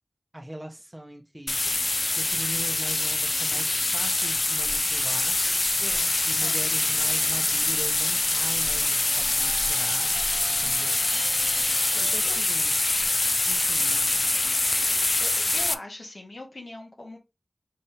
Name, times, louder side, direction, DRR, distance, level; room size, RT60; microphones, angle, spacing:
voice 1, 0.3-1.6 2.2-5.4 6.3-10.2 10.5-11.1 11.9-12.7 13.4-14.1, right 1 dB, 15° right, 0.8 m, -41 dB
sound 1, 1.5-15.7, left 2 dB, 50° left, 0.4 m, -24 dB
voice 2, 5.8-6.6 10.6-11.2 11.8-12.4 15.2-17.2, left 1 dB, 75° left, 1.4 m, -42 dB
sound 2, 6.6-12.2, right 2 dB, 45° right, 0.5 m, -43 dB
5.5 x 3.5 x 2.7 m
wide cardioid pair, 70°, 0 cm